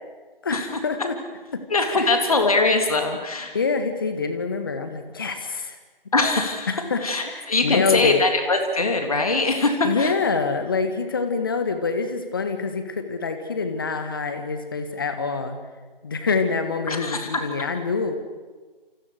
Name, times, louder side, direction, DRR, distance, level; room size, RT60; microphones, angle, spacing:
voice 1, 0.4-1.2 1.5-1.6 2.0-2.1 3.5-5.8 6.7-8.2 9.8-15.6 16.0-18.2, left 4 dB, 25° left, 8 dB, 1.7 m, -26 dB
voice 2, 1.7-3.5 6.1-6.7 7.0-10.1 16.9-17.3, left 3 dB, 40° left, 5 dB, 3.4 m, -22 dB
28.5 x 27.0 x 6.5 m, 1.3 s
figure-of-eight pair, 160°, 29 cm